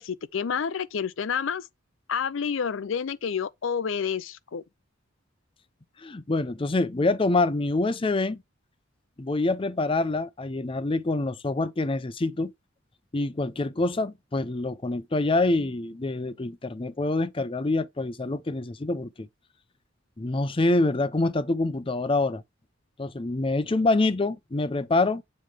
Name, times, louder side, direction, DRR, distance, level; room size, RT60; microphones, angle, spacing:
voice 1, 0.0-1.6 2.1-4.6, left 6 dB, 75° left, 0.5 m, -29 dB
voice 2, 6.0-8.4 9.2-12.5 13.1-19.3 20.2-22.4 23.0-25.2, left 2 dB, 25° left, 0.5 m, -26 dB
7.5 x 3.2 x 4.9 m
head